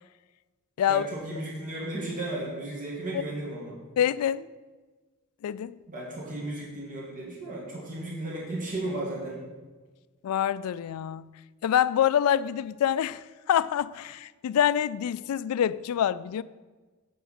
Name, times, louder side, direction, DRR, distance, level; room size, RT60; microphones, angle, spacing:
voice 1, 0.9-3.8 5.9-9.5, right 2 dB, 35° right, 1.9 m, -34 dB
voice 2, 4.0-4.5 5.4-5.8 10.2-11.3 11.6-16.4, left 9 dB, 75° left, 0.3 m, -26 dB
7.8 x 5.0 x 6.4 m
head